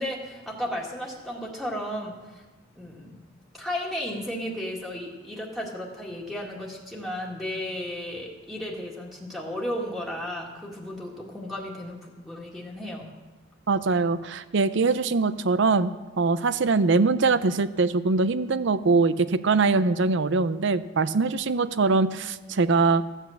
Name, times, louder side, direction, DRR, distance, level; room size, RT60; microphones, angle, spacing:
voice 1, 0.0-2.4 2.8-3.2 3.5-13.1, left 1 dB, ahead, -3 dB, 1.9 m, -34 dB
voice 2, 13.7-15.9 16.2-23.0, right 4 dB, 65° right, 14 dB, 0.6 m, -22 dB
14.5 x 8.2 x 7.2 m, 1.2 s
head